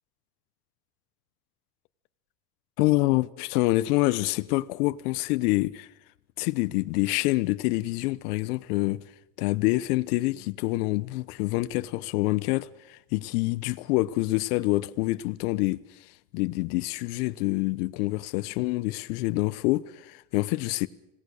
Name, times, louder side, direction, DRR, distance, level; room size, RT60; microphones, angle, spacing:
voice 1, 2.8-5.9 6.4-9.0 9.4-15.8 16.3-20.9, left 20 dB, 80° left, 1.2 m, -26 dB
27.0 x 18.0 x 6.6 m
cardioid pair, 145°, 46 cm